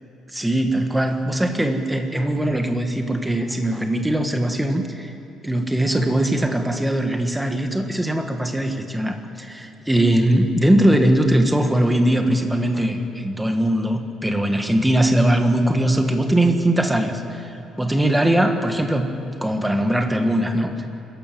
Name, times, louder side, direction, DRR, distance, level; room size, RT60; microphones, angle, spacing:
voice 1, 0.3-5.1 5.4-19.1 19.4-20.7, right 1 dB, 5° right, 5 dB, 1.4 m, -20 dB
25.0 x 14.5 x 9.1 m, 2.8 s
cardioid pair, 170°, 0 cm